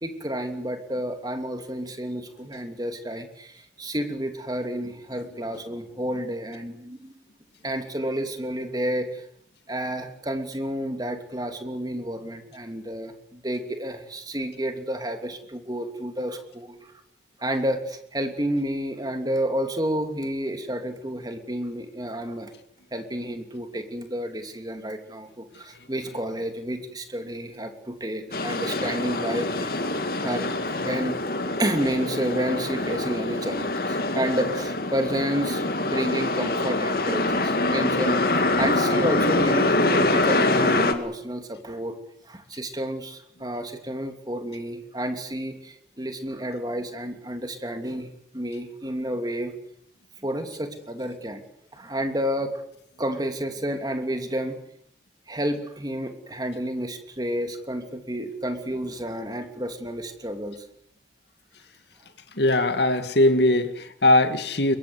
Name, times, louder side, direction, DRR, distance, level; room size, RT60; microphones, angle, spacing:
voice 1, 0.0-7.1 7.6-9.2 9.7-16.9 17.4-22.5 22.9-29.7 30.2-31.2 31.6-38.2 38.6-42.0 42.3-49.5 50.2-51.4 51.7-52.6 53.0-54.6 55.3-60.6, equal, 20° right, 6 dB, 3.0 m, -30 dB
sound 1, 28.3-40.9, left 2 dB, 55° left, 2.3 m, -25 dB
voice 2, 62.4-64.8, left 1 dB, 70° left, 9 dB, 2.2 m, -20 dB
22.5 x 22.0 x 8.2 m, 0.69 s
head